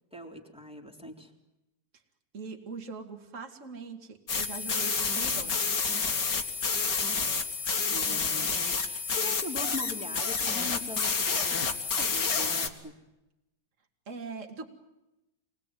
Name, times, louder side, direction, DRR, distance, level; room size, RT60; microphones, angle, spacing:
voice 1, 0.1-1.3 7.8-11.6 11.9-13.0, left 1 dB, 5° right, 1 dB, 3.5 m, -41 dB
voice 2, 2.3-5.7 14.1-14.7, right 4 dB, 40° right, 3 dB, 2.6 m, -41 dB
sound 1, 4.3-12.7, left 5 dB, 60° left, 2.6 m, -29 dB
28.5 x 21.0 x 9.3 m, 0.96 s
omnidirectional pair, 2.1 m